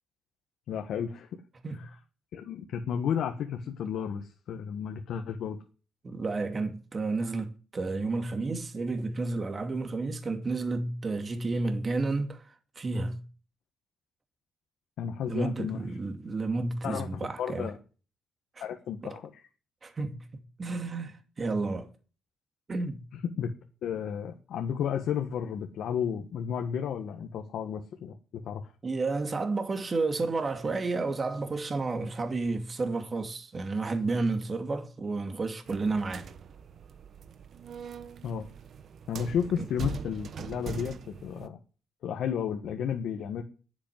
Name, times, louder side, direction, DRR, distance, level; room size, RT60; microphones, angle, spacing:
voice 1, 0.7-1.3 2.3-5.6 15.0-15.8 16.8-17.1 17.4-17.8 18.6-19.5 23.4-23.5 23.8-28.1 28.4-28.7 38.2-38.4 39.1-41.0 41.2-41.6 42.0-43.4, left 8 dB, 75° left, 1.6 m, -32 dB
voice 2, 6.0-12.5 12.8-13.2 15.3-17.7 18.6-18.7 19.0-19.2 19.8-20.2 20.6-21.9 22.7-23.0 28.8-36.3 39.6-39.7, right 3 dB, 35° right, 2.5 m, -31 dB
sound 1, 35.7-41.5, right 6 dB, 60° right, 1.2 m, -42 dB
10.5 x 8.4 x 9.4 m
cardioid pair, 90°, 0 cm